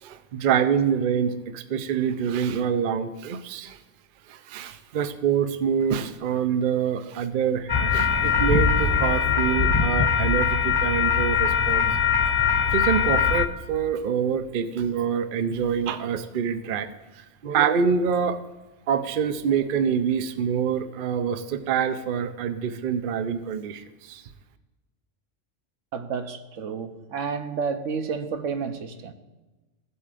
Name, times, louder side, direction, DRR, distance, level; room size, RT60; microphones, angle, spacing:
voice 1, 0.0-3.8 4.3-11.9 12.7-18.4 18.9-24.2, right 7 dB, 55° right, 10 dB, 0.7 m, -26 dB
sound 1, 7.7-13.5, left 6 dB, 30° left, 0.5 m, -21 dB
voice 2, 25.9-29.1, right 5 dB, 80° right, 7 dB, 1.2 m, -30 dB
16.0 x 8.2 x 2.5 m, 1.2 s
omnidirectional pair, 1.3 m